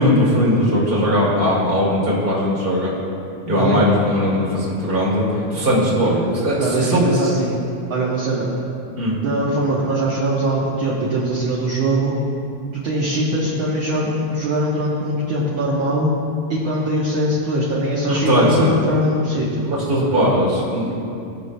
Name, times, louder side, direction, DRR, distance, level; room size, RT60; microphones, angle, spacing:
voice 1, 0.0-2.9 3.4-7.1 9.0-9.1 18.1-18.7 19.6-20.9, equal, 20° right, -6 dB, 1.9 m, -19 dB
voice 2, 6.6-7.6 7.9-8.5 9.2-12.2 12.7-16.1 16.5-19.6, right 1 dB, 60° right, -6 dB, 1.4 m, -21 dB
19.5 x 6.8 x 2.2 m, 2.5 s
omnidirectional pair, 3.4 m